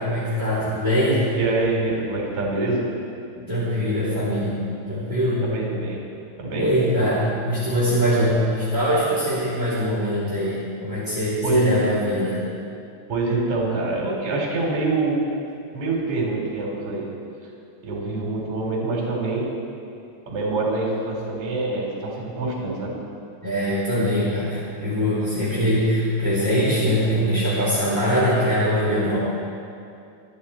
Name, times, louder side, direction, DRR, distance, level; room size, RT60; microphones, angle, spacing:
voice 1, 0.0-1.3 3.3-4.6 4.9-5.5 6.5-12.4 23.4-29.2, equal, 5° right, -9 dB, 2.7 m, -22 dB
voice 2, 1.3-2.8 5.4-6.0 6.4-6.7 11.4-11.8 13.1-15.2 15.7-17.1 17.8-19.5 20.3-23.0, right 2 dB, 35° right, -2 dB, 3.7 m, -25 dB
24.5 x 12.5 x 4.3 m, 2.5 s
omnidirectional pair, 5.4 m